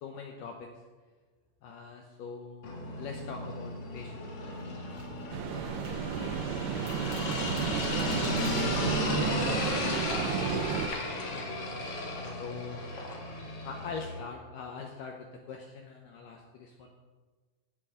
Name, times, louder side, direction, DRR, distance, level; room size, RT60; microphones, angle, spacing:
voice 1, 0.0-0.7 1.6-5.0 6.8-6.9 11.3-11.5 11.9-12.9 13.6-16.9, left 5 dB, 75° left, 2 dB, 2.1 m, -43 dB
sound 1, 2.6-14.2, left 2 dB, 50° left, 2.0 m, -34 dB
sound 2, 3.8-3.9 4.4-11.0, right 2 dB, 40° right, 2.6 m, -53 dB
sound 3, 5.3-10.9, right 9 dB, 90° right, 3.0 m, -33 dB
voice 2, 5.8-10.8 11.9-12.2 16.8-16.9, right 1 dB, 65° right, -5 dB, 6.6 m, -48 dB
17.5 x 9.6 x 3.7 m, 1.4 s
omnidirectional pair, 4.8 m